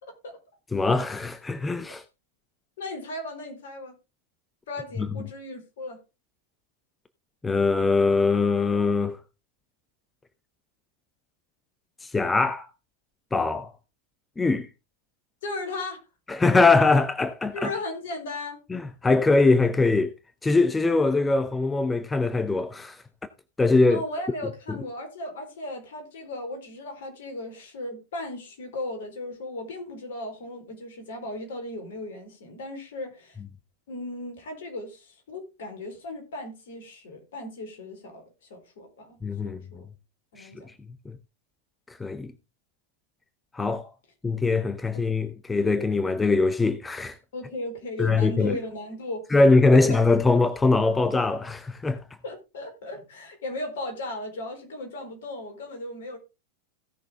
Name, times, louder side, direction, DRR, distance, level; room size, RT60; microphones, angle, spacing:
voice 1, 0.7-2.0 5.0-5.1 7.4-9.2 12.0-12.7 13.3-13.7 14.4-14.7 16.3-17.7 18.7-20.1 20.4-23.0 23.6-24.0 39.2-39.6 40.4-40.5 41.1-41.2 42.0-42.3 43.5-43.9 44.2-47.2 48.0-48.6 49.3-52.0, left 3 dB, 10° left, 0.8 m, -22 dB
voice 2, 2.8-4.0 4.7-6.0 15.4-16.0 17.5-18.6 23.9-33.4 33.9-38.2 38.5-39.9 40.3-40.7 44.9-45.0 47.3-49.3 49.7-49.9 52.2-56.2, left 2 dB, 60° left, 4.1 m, -36 dB
16.5 x 6.4 x 3.6 m
figure-of-eight pair, 90°, 0 cm